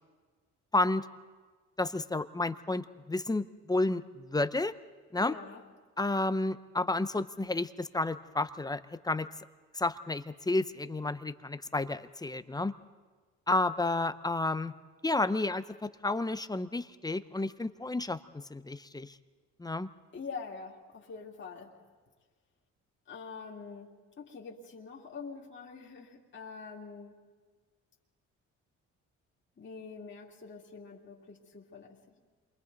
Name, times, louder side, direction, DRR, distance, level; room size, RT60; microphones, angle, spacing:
voice 1, 1.8-4.7 5.1-5.3 6.0-9.3 9.7-12.7 13.5-14.7 15.0-18.2 18.5-19.1 19.6-19.9, left 2 dB, 15° left, 12 dB, 0.7 m, -31 dB
voice 2, 5.2-5.6 20.1-21.7 23.1-23.9 24.2-27.1 29.6-32.2, left 5 dB, 40° left, -3 dB, 2.6 m, -45 dB
28.0 x 23.5 x 4.0 m, 1.4 s
cardioid pair, 90°, 30 cm